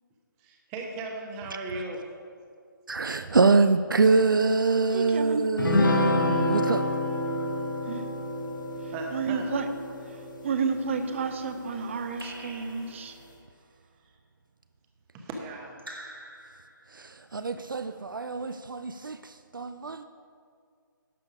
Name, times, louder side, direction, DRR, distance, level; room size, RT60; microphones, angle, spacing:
voice 1, 0.4-2.0 8.9-9.4 11.8-11.9 12.5-12.6 15.1-15.8, right 2 dB, 15° right, 2 dB, 1.0 m, -37 dB
voice 2, 2.9-6.9 16.9-20.0, right 4 dB, 70° right, 10 dB, 0.5 m, -25 dB
voice 3, 4.9-5.5 7.9-8.1 9.1-9.7 10.1-10.2 10.4-13.2, right 5 dB, 35° right, 8 dB, 0.8 m, -31 dB
sound 1, 5.6-11.2, left 2 dB, 65° left, 1.3 m, -28 dB
Raindrop / Drip, 12.2-13.4 15.8-17.1, right 1 dB, 90° right, 1.9 m, -46 dB
11.5 x 6.9 x 5.0 m, 2.2 s
figure-of-eight pair, 145°, 11 cm